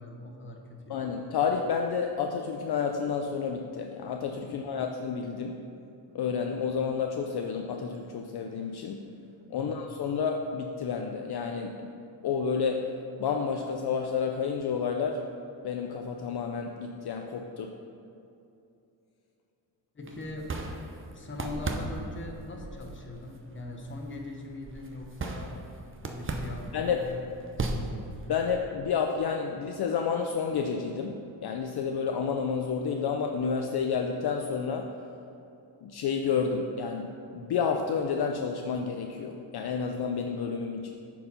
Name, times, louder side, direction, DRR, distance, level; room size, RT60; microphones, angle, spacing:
voice 1, 0.0-1.1 4.4-4.7 9.5-9.8 19.9-20.5 21.1-25.6 26.0-28.2, left 2 dB, 25° left, 1 dB, 1.0 m, -41 dB
voice 2, 0.9-5.6 6.1-9.1 9.5-11.9 12.2-12.9 13.2-15.2 15.6-17.7 26.7-27.0 28.3-34.9 35.8-40.9, left 6 dB, 55° left, 3 dB, 0.6 m, -30 dB
sound 1, 20.0-28.5, right 2 dB, 25° right, 0.6 m, -37 dB
8.8 x 4.7 x 5.5 m, 2.7 s
wide cardioid pair, 125°, 46 cm